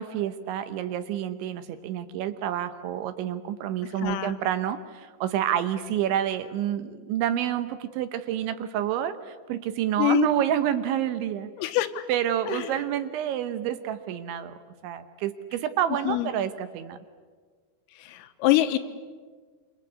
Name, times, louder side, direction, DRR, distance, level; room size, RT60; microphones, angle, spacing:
voice 1, 0.0-11.7 12.1-14.6 14.8-17.0, right 10 dB, 75° right, 10 dB, 3.0 m, -28 dB
voice 2, 4.0-4.3 10.0-10.3 11.6-12.1 12.5-12.6 16.1-16.3 18.0-18.8, left 15 dB, 85° left, 9 dB, 3.8 m, -24 dB
27.0 x 26.0 x 8.4 m, 1.5 s
omnidirectional pair, 5.9 m